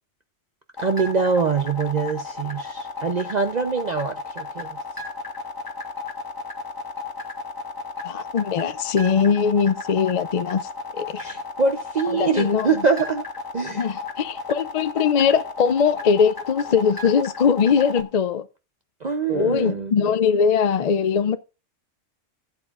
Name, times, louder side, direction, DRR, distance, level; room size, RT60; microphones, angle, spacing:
sound 1, 0.8-18.0, left 4 dB, 20° left, 1.5 m, -33 dB
voice 1, 0.8-4.7 11.2-13.3 13.5-13.9 19.0-19.9, right 5 dB, 45° right, 0.7 m, -24 dB
voice 2, 8.0-11.2 12.1-12.7 13.7-18.4 19.3-21.4, left 6 dB, 55° left, 0.4 m, -21 dB
16.0 x 8.4 x 2.4 m
omnidirectional pair, 1.3 m